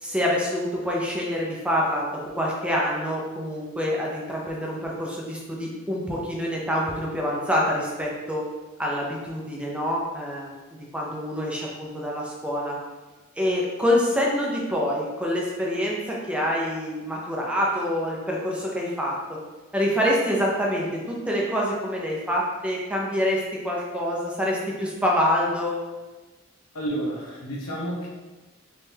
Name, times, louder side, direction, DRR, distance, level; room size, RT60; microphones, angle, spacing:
voice 1, 0.0-8.4 8.8-10.5 10.9-12.8 13.4-19.4 19.7-25.8, equal, 5° right, -3 dB, 0.5 m, -26 dB
voice 2, 26.7-28.1, right 1 dB, 80° left, -3 dB, 1.0 m, -30 dB
3.6 x 3.1 x 2.8 m, 1.2 s
head